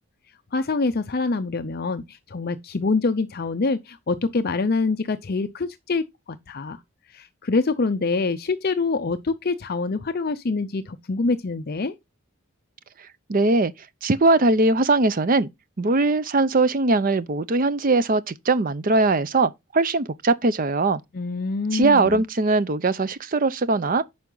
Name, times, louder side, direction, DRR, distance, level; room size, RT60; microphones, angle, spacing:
voice 1, 0.5-6.8 7.1-11.9 21.1-22.2, left 3 dB, 45° left, 0.5 m, -25 dB
voice 2, 13.3-13.7 14.0-15.5 15.8-21.0 21.7-24.0, right 3 dB, 40° right, 0.6 m, -20 dB
9.5 x 5.5 x 3.9 m
head